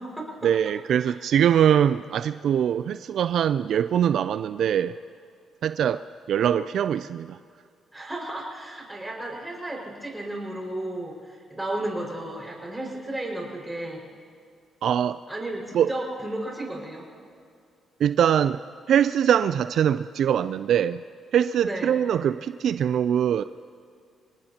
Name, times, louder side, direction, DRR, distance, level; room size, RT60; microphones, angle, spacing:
voice 1, 0.4-4.9 5.6-6.0 6.3-7.4 14.8-15.2 15.7-15.9 18.0-18.6 18.9-21.0 21.3-23.4, right 9 dB, 70° right, 12 dB, 0.3 m, -22 dB
voice 2, 7.9-14.0 15.3-17.1 21.6-21.9, right 1 dB, 10° right, -2 dB, 5.2 m, -33 dB
27.0 x 19.0 x 2.9 m, 2.3 s
cardioid pair, 90°, 0 cm